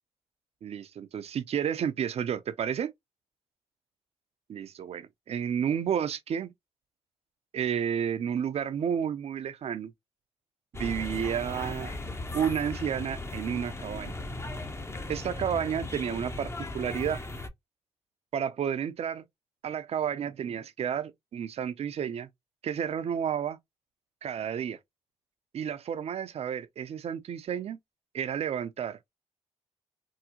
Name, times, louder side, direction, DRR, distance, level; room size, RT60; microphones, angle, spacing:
voice 1, 0.6-2.9 4.5-6.5 7.5-9.9 10.7-11.9 12.3-14.1 15.1-17.2 18.3-19.2 19.6-22.3 22.6-23.6 24.2-24.8 25.5-27.8 28.1-29.1, right 8 dB, 60° right, 0.5 m, -31 dB
sound 1, 10.7-17.5, left 2 dB, 25° left, 0.7 m, -37 dB
3.5 x 2.0 x 2.9 m
supercardioid pair, 60°, 12 cm